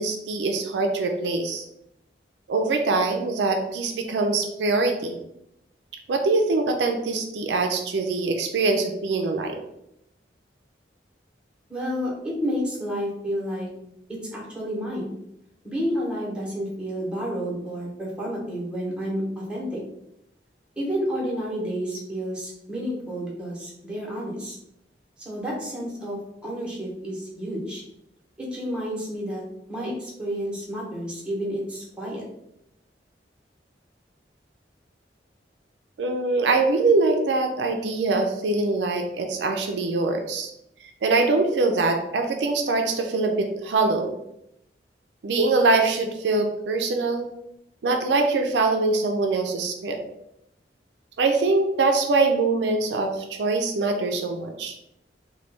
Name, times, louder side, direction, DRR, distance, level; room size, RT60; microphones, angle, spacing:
voice 1, 0.0-1.6 2.5-5.2 6.1-9.6 36.0-40.5 41.0-44.2 45.2-47.3 47.8-50.0 51.2-54.8, right 3 dB, 75° right, 4 dB, 0.4 m, -23 dB
voice 2, 11.7-13.7 14.1-15.1 15.6-19.8 20.8-24.6 25.2-27.8 28.4-29.4 29.7-32.2, equal, 5° right, -5 dB, 0.9 m, -30 dB
3.0 x 2.2 x 3.2 m, 0.80 s
head